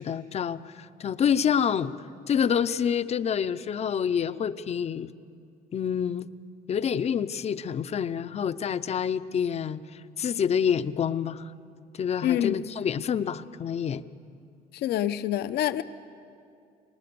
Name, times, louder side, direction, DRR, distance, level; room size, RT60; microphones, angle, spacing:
voice 1, 0.0-1.9 2.3-5.1 5.7-6.3 6.7-11.5 11.9-14.0, left 8 dB, 40° left, 13 dB, 0.7 m, -27 dB
voice 2, 12.2-12.5 14.7-15.8, left 12 dB, 75° left, 12 dB, 0.8 m, -26 dB
22.5 x 19.5 x 6.9 m, 2.5 s
cardioid pair, 110°, 17 cm